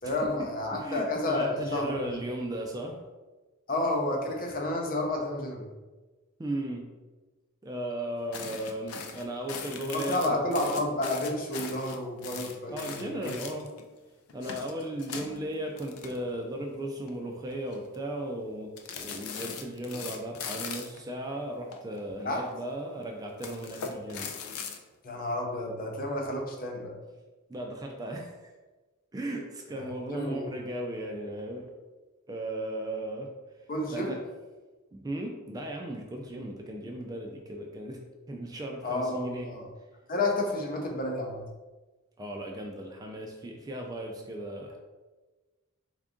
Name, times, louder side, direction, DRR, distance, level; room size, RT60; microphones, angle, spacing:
voice 1, 0.0-2.0 3.7-5.7 9.9-13.3 14.4-14.6 22.2-22.4 25.0-26.9 29.7-30.5 33.7-34.1 38.8-39.6 40.1-41.5, left 1 dB, 40° left, 1 dB, 0.6 m, -31 dB
voice 2, 0.7-3.0 6.4-6.9 7.6-10.3 12.7-13.7 14.3-24.3 27.5-28.5 29.1-31.7 32.3-33.3 33.9-34.2 34.9-38.0 38.3-39.5 42.2-44.8, right 1 dB, 20° right, 1 dB, 0.3 m, -36 dB
sound 1, 8.3-13.9 14.3-16.6 16.9-17.1 17.5-18.0 18.8-21.0 21.7-22.5 23.3-24.8, left 6 dB, 90° left, 0.4 m, -40 dB
3.6 x 2.4 x 3.6 m, 1.2 s
head